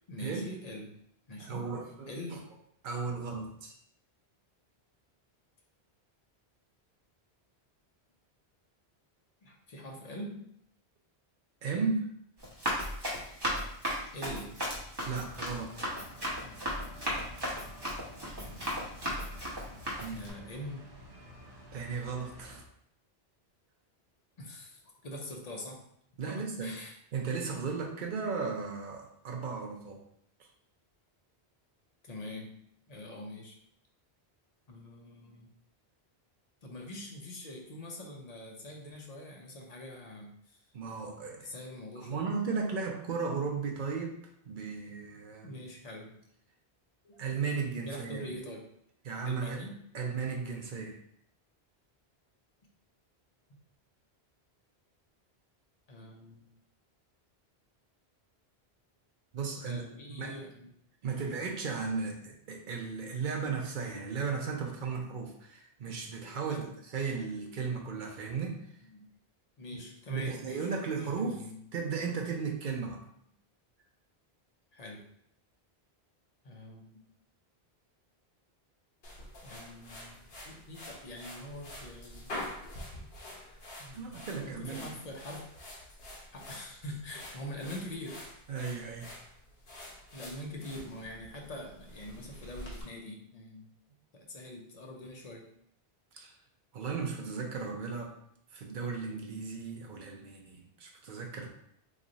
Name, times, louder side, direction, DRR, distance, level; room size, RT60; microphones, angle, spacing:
voice 1, 0.1-1.0 1.3-1.7 2.1-2.5 9.4-10.5 14.1-14.6 18.4-18.9 20.1-20.8 24.4-25.8 26.3-27.0 32.0-32.6 32.9-33.6 34.7-35.5 36.6-40.6 41.4-42.3 45.4-46.2 47.0-47.2 47.8-48.7 49.2-49.8 53.5-53.6 55.9-56.4 59.6-60.7 61.1-61.3 66.4-66.8 68.8-69.1 69.6-70.7 71.0-71.6 74.7-75.1 76.4-77.0 79.4-80.1 80.4-82.8 83.8-85.5 86.3-88.2 90.1-93.7 94.1-95.5, left 1 dB, 45° left, 0 dB, 0.6 m, -44 dB
voice 2, 1.4-2.1 2.8-3.7 11.6-12.1 15.0-15.9 20.0-20.2 21.7-22.6 26.2-26.7 27.1-30.0 40.7-41.5 42.0-44.2 44.4-45.5 47.2-48.3 49.0-49.6 49.9-51.0 59.3-59.8 60.1-60.4 61.0-68.5 70.1-71.4 71.7-73.0 83.9-84.9 88.5-89.1 96.1-96.3 96.7-98.1 98.5-101.5, right 5 dB, 55° right, 1 dB, 0.7 m, -35 dB
Run, 12.4-20.3, equal, 25° right, 0.9 m, -36 dB
sound 1, 15.0-22.6, equal, 75° right, 1.2 m, -51 dB
sound 2, 79.0-92.8, left 1 dB, 70° left, 1.0 m, -47 dB
3.1 x 2.5 x 3.9 m, 0.70 s
omnidirectional pair, 1.1 m